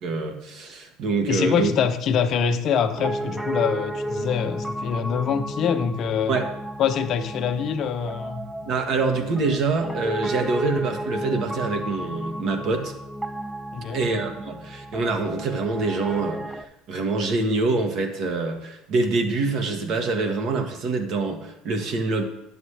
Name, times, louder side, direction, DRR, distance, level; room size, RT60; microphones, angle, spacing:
voice 1, 0.0-1.7 6.3-6.5 8.6-12.9 13.9-22.2, right 3 dB, 55° right, 5 dB, 1.2 m, -25 dB
voice 2, 1.3-6.4 6.8-8.4 13.7-14.0, left 7 dB, 50° left, 7 dB, 0.8 m, -24 dB
Piano, 2.9-16.6, right 1 dB, 5° right, 0.5 m, -33 dB
9.8 x 7.2 x 3.3 m, 0.89 s
supercardioid pair, 110°, 0 cm